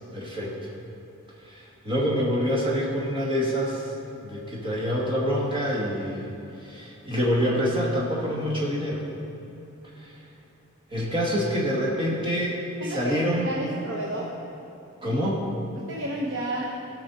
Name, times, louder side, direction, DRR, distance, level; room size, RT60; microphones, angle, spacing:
voice 1, 0.1-0.5 1.4-3.9 4.2-6.3 6.6-9.0 10.0-10.1 10.9-13.6 15.0-15.5, equal, 25° right, -5 dB, 2.1 m, -26 dB
voice 2, 12.8-14.3 15.7-16.7, right 1 dB, 60° right, -4 dB, 1.0 m, -31 dB
16.5 x 5.9 x 4.2 m, 2.9 s
head